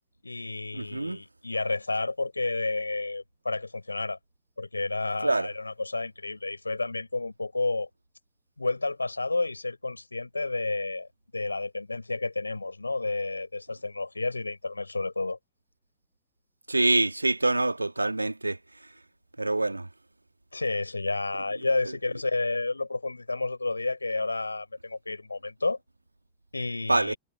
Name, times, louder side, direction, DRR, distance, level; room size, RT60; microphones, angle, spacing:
voice 1, 0.2-4.2 4.6-7.9 8.6-15.4 20.5-25.8 26.5-27.2, left 3 dB, 80° left, 4.4 m, -31 dB
voice 2, 0.7-1.2 5.2-5.5 16.7-18.6 19.4-19.9 26.9-27.1, right 2 dB, 85° right, 1.9 m, -25 dB
figure-of-eight pair, 90°, 0 cm